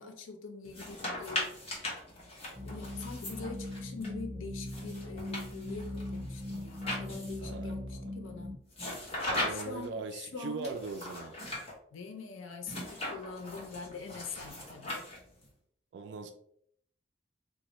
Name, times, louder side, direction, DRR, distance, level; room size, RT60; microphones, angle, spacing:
voice 1, 0.0-1.6 2.6-8.5 9.4-10.7 11.9-15.0, left 4 dB, 90° left, 0.5 m, -44 dB
sound 1, 0.6-4.1 4.7-7.5 8.7-9.9 10.6-11.7 12.6-15.5, left 1 dB, 30° left, 0.9 m, -39 dB
sound 2, 2.5-8.5, left 1 dB, 35° right, 1.0 m, -40 dB
voice 2, 7.4-8.1 9.3-11.4 15.9-16.3, right 4 dB, 65° right, 0.3 m, -40 dB
3.9 x 2.1 x 2.9 m
head